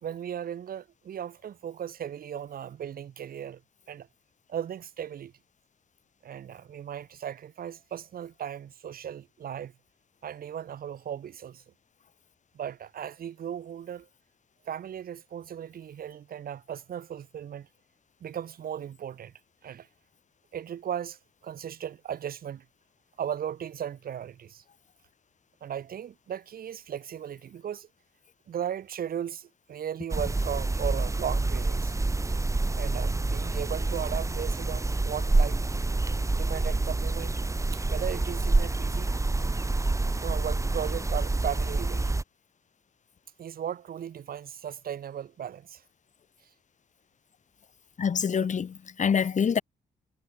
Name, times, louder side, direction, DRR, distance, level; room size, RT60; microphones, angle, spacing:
voice 1, 0.0-3.6 3.9-4.1 4.5-5.3 6.2-9.7 10.2-11.6 12.5-14.1 14.7-17.7 18.2-19.3 19.6-19.9 20.5-22.6 23.2-24.6 25.6-27.9 28.5-31.9 32.7-35.6 36.3-37.4 37.7-39.1 40.2-42.0 43.4-45.8 48.4-48.5, right 9 dB, 75° right, 2.2 m, -36 dB
sound 1, 30.1-42.2, right 2 dB, 20° right, 2.0 m, -27 dB
voice 2, 48.0-49.6, left 7 dB, 50° left, 1.9 m, -26 dB
cardioid pair, 90°, 15 cm